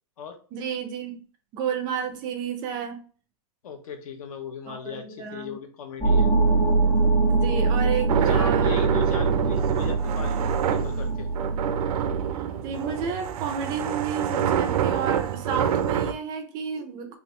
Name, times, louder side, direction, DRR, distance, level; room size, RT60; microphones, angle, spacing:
voice 1, 0.5-1.2 1.5-3.0 4.7-5.6 7.3-8.9 12.6-17.2, right 7 dB, 20° right, 7 dB, 0.4 m, -31 dB
voice 2, 3.6-6.3 8.1-11.3, left 6 dB, 75° left, 6 dB, 1.0 m, -37 dB
sound 1, 6.0-12.3, right 3 dB, 10° left, 0.7 m, -23 dB
sound 2, 8.1-16.1, right 9 dB, 90° right, 0.5 m, -27 dB
3.6 x 2.7 x 3.1 m, 0.40 s
supercardioid pair, 165°, 19 cm